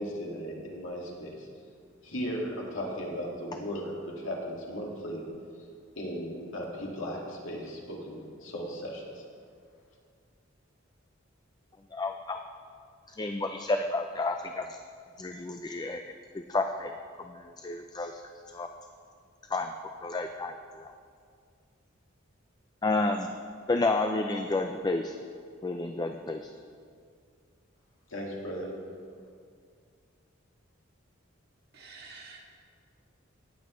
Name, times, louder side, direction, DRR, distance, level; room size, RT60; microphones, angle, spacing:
voice 1, 0.0-1.5 2.0-5.2 6.0-9.0 28.1-28.7, equal, 80° left, -2 dB, 2.1 m, -36 dB
voice 2, 11.9-12.4 13.1-14.7 15.2-16.0 16.3-16.9 17.2-18.2 18.5-18.7 19.5-19.7 20.0-20.9 22.8-23.3 23.7-25.2 25.6-26.5, left 2 dB, 20° left, 5 dB, 0.4 m, -30 dB
voice 3, 31.7-32.6, right 4 dB, 55° right, -1 dB, 1.8 m, -49 dB
18.5 x 7.8 x 3.1 m, 2.2 s
head